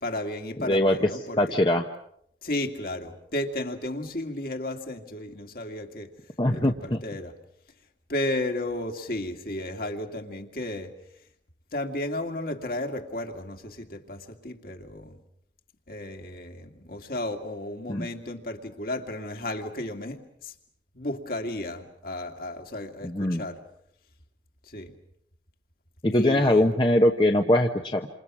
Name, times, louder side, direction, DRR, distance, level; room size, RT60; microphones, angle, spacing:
voice 1, 0.0-1.6 2.4-6.1 6.5-7.4 8.1-10.9 11.7-15.2 15.9-20.5 20.9-23.6 24.6-25.0 26.1-26.7, left 1 dB, 50° left, 4 dB, 2.4 m, -33 dB
voice 2, 0.7-1.1 1.4-1.9 6.4-7.0 17.9-18.1 23.0-23.4 26.0-28.1, left 1 dB, 25° left, 4 dB, 1.0 m, -22 dB
28.5 x 27.5 x 6.2 m, 0.71 s
head